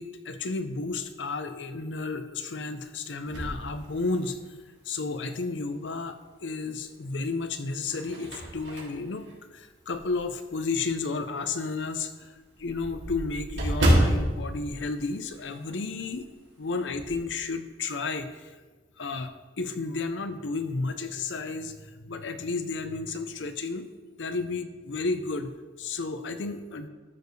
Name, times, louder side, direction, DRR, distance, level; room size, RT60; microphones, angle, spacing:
voice 1, 0.0-4.4 4.8-16.3 16.6-18.5 19.0-23.9 24.2-26.9, left 3 dB, 80° left, 9 dB, 0.7 m, -32 dB
sound 1, 3.3-4.6 5.1-5.2 6.7-7.2 7.7-10.3 10.8-10.9 11.3-11.4 11.7-11.8 12.0-15.8 16.0-16.3 16.6-17.2, equal, 85° right, 2.4 m, -29 dB
13.0 x 6.8 x 3.2 m, 1.3 s
head